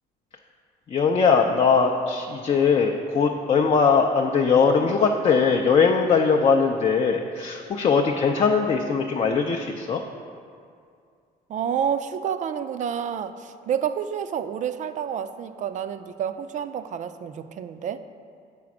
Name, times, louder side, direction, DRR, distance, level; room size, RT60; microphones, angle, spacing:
voice 1, 0.9-10.0, left 5 dB, 35° left, 2 dB, 0.4 m, -20 dB
voice 2, 11.5-18.0, right 8 dB, 45° right, 11 dB, 0.4 m, -29 dB
7.5 x 4.2 x 5.9 m, 2.3 s
cardioid pair, 110°, 17 cm